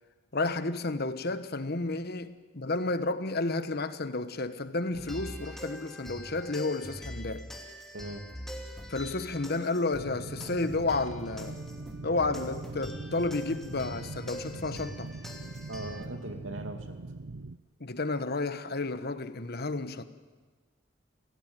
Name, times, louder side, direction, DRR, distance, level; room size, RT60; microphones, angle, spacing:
voice 1, 0.3-7.4 8.9-11.6 12.0-15.1 17.8-20.0, left 3 dB, 55° left, 1.3 m, -31 dB
sound 1, 4.9-16.1, equal, ahead, 2.9 m, -43 dB
voice 2, 7.9-8.3 15.7-17.0, right 1 dB, 85° right, 2.8 m, -40 dB
sound 2, 10.0-17.6, right 3 dB, 70° right, 0.7 m, -42 dB
27.0 x 17.0 x 9.2 m
head